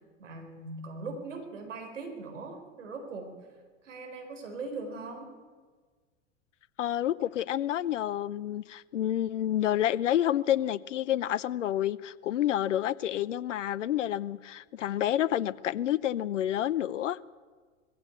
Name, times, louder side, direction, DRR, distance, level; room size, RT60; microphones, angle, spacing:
voice 1, 0.2-3.3 3.8-5.3, right 3 dB, 80° right, 4 dB, 4.3 m, -40 dB
voice 2, 6.8-17.3, left 12 dB, 80° left, 19 dB, 0.7 m, -29 dB
20.5 x 16.0 x 8.3 m, 1.5 s
hypercardioid pair, 85°, 36 cm